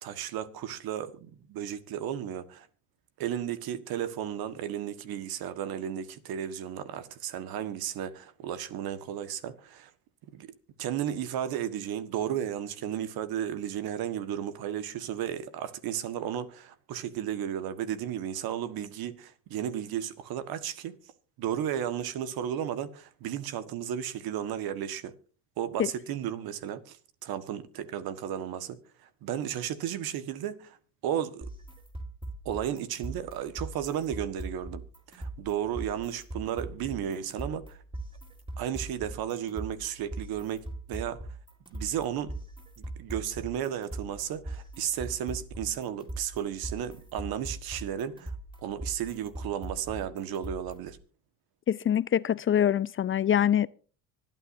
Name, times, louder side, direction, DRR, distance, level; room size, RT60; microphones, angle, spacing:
voice 1, 0.0-2.7 3.2-9.9 10.3-10.5 10.8-20.9 21.4-25.1 25.6-30.8 31.0-31.5 32.4-34.8 35.1-37.8 38.6-41.2 41.7-42.3 42.8-48.3 48.6-51.0, right 10 dB, 70° right, 1.6 m, -34 dB
sound 1, 31.4-51.0, right 2 dB, 15° right, 4.1 m, -41 dB
voice 2, 51.7-53.7, left 9 dB, 35° left, 0.5 m, -24 dB
25.0 x 9.1 x 2.7 m
supercardioid pair, 85°, 38 cm